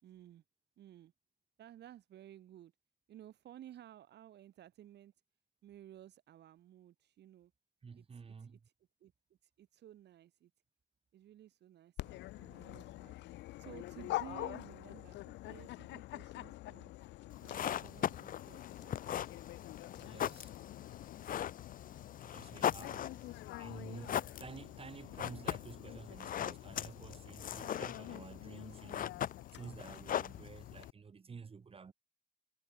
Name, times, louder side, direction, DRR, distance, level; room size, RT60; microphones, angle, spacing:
voice 1, 0.0-0.4 0.8-1.1 1.6-2.7 3.1-5.1 5.6-7.5 7.9-8.7 9.0-10.5 11.1-13.2 13.6-16.9 17.4-19.2 22.5-23.3, right 11 dB, 75° right, 5.7 m, -56 dB
voice 2, 7.8-8.6 20.0-20.5 22.2-29.3 29.5-31.9, right 5 dB, 30° right, 2.5 m, -51 dB
Dog, 12.0-30.9, left 17 dB, 90° left, 0.5 m, -47 dB
sound 1, 17.3-30.9, left 10 dB, 50° left, 0.7 m, -40 dB
cardioid pair, 125°, 18 cm